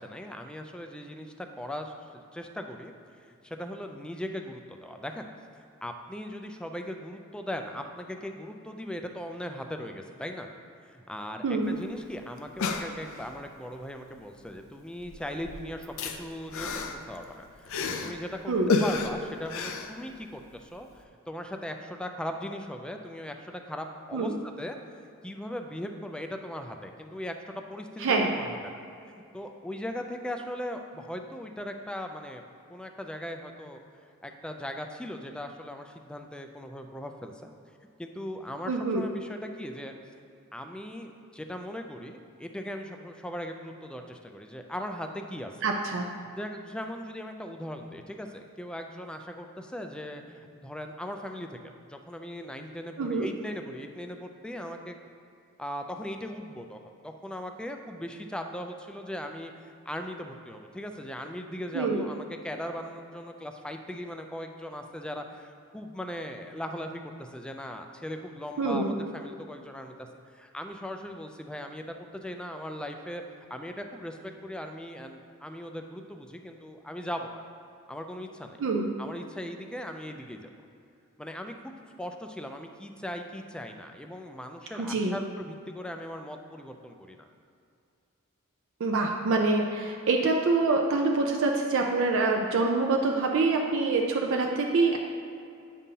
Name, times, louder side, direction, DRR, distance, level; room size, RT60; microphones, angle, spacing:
voice 1, 0.0-2.9 3.2-5.3 5.6-10.5 10.8-24.8 25.2-28.8 29.1-32.4 32.7-33.8 34.2-37.5 38.0-39.9 40.5-45.7 46.3-55.0 55.6-73.2 73.5-77.4 77.9-78.6 79.0-80.5 81.2-87.3, equal, 5° left, 4 dB, 0.3 m, -39 dB
voice 2, 11.4-11.8 18.5-18.7 24.1-24.4 28.0-28.3 38.7-39.1 45.6-46.0 53.0-53.3 61.7-62.0 68.6-69.0 78.6-78.9 84.7-85.2 88.8-95.0, right 3 dB, 65° right, 1 dB, 0.5 m, -25 dB
sound 1, 11.7-11.8 12.0-12.1 12.4-13.4 14.5-14.7 15.0-18.2 18.7-20.5 20.9-21.0, left 4 dB, 65° left, 0.5 m, -32 dB
8.4 x 5.3 x 2.8 m, 2.4 s
head